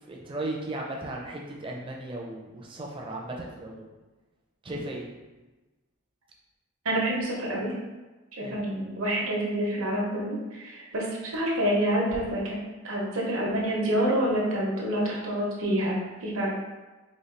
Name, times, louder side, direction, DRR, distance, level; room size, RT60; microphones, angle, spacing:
voice 1, 0.1-3.9 4.6-5.0 8.4-8.6, right 1 dB, 25° right, -1 dB, 0.5 m, -36 dB
voice 2, 6.8-7.7 8.4-11.0 11.3-12.6 12.8-16.5, right 1 dB, 70° right, -3 dB, 0.9 m, -27 dB
4.0 x 2.3 x 3.2 m, 1.2 s
head